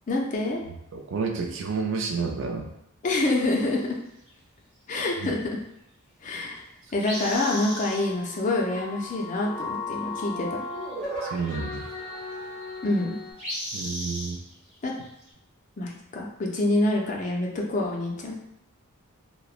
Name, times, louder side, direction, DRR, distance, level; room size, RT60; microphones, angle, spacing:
voice 1, 0.1-0.6 3.0-3.9 4.9-5.4 6.2-6.6 6.9-10.6 12.8-13.2 14.8-14.9 15.8-18.3, left 2 dB, 35° left, -1 dB, 0.4 m, -26 dB
voice 2, 0.9-2.7 5.2-5.3 11.2-11.9 13.7-14.4, right 4 dB, 60° right, 2 dB, 0.4 m, -30 dB
sound 1, 3.4-3.9 4.3-4.4 7.0-8.0 10.4-10.5 10.7-10.9 11.2-11.5 13.4-15.3, equal, 30° right, 0.9 m, -35 dB
sound 2, 7.3-13.3, left 2 dB, 10° left, 1.1 m, -36 dB
3.0 x 2.0 x 2.3 m, 0.77 s
head